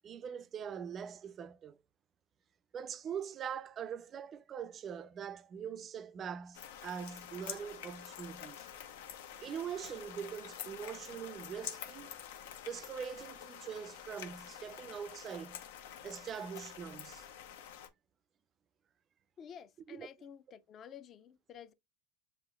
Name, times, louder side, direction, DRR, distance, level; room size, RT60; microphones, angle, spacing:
voice 1, 0.0-1.8 2.7-8.7 9.4-12.2 12.7-15.6 16.0-17.3 19.9-20.1, right 7 dB, 35° right, 0.4 m, -43 dB
sound 1, 6.5-17.9, left 9 dB, 85° left, 0.6 m, -48 dB
voice 2, 19.4-21.7, left 8 dB, 40° left, 0.5 m, -51 dB
7.2 x 2.4 x 2.2 m
supercardioid pair, 105°, 0 cm